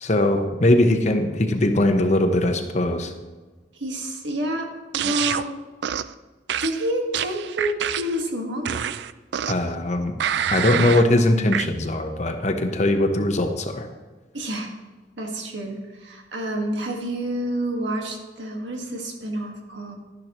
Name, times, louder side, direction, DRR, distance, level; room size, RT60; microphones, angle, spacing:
voice 1, 0.0-3.1 9.5-10.1 10.5-13.9, left 1 dB, 40° left, 6 dB, 0.9 m, -20 dB
voice 2, 3.7-5.5 6.6-8.8 14.3-14.7 15.2-20.0, right 1 dB, 90° right, 2 dB, 1.7 m, -28 dB
sound 1, 4.9-5.4 5.8-6.1 6.5-8.2 8.6-9.7 10.2-11.1 11.5-11.7, right 9 dB, 65° right, 0.3 m, -27 dB
12.0 x 11.0 x 3.0 m, 1.3 s
head